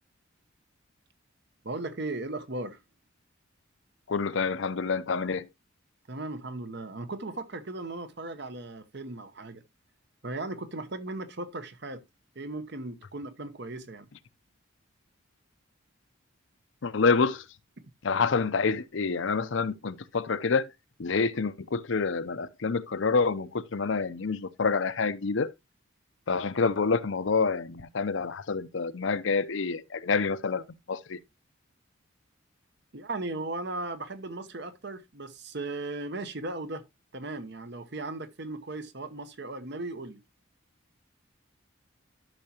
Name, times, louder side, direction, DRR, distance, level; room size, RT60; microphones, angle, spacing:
voice 1, 1.6-2.8 6.1-9.6 10.2-12.0 12.3-14.1 32.9-36.8 37.1-40.2, right 2 dB, 55° right, 0.9 m, -37 dB
voice 2, 4.1-5.5 16.8-17.4 18.0-20.7 21.0-25.5 26.3-31.2, left 4 dB, 65° left, 0.6 m, -27 dB
12.0 x 5.8 x 2.9 m
head